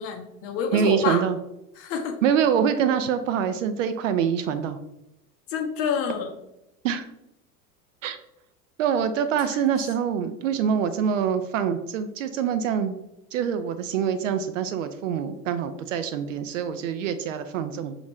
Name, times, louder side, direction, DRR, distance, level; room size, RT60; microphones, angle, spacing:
voice 1, 0.0-1.3 1.8-2.2 5.5-6.3 9.2-9.6, left 6 dB, 30° left, 3 dB, 0.6 m, -28 dB
voice 2, 0.7-1.4 2.2-4.8 6.8-7.0 8.0-8.2 8.8-13.0 13.3-18.0, right 8 dB, 55° right, 10 dB, 0.5 m, -25 dB
6.0 x 2.5 x 3.0 m, 0.89 s
figure-of-eight pair, 75°, 47 cm